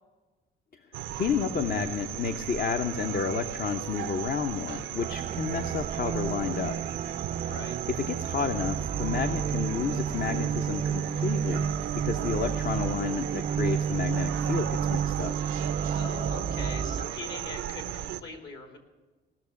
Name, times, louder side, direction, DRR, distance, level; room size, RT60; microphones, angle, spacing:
sound 1, 0.9-18.2, right 11 dB, 90° right, 0.6 m, -37 dB
voice 1, 1.1-6.7 7.3-7.5 8.0-15.3, left 6 dB, 50° left, 6 dB, 0.8 m, -31 dB
sound 2, 5.0-17.1, right 7 dB, 40° right, 0.4 m, -31 dB
voice 2, 15.9-18.8, left 4 dB, 65° left, 4 dB, 2.8 m, -42 dB
18.0 x 6.5 x 8.1 m, 1.2 s
cardioid pair, 90°, 20 cm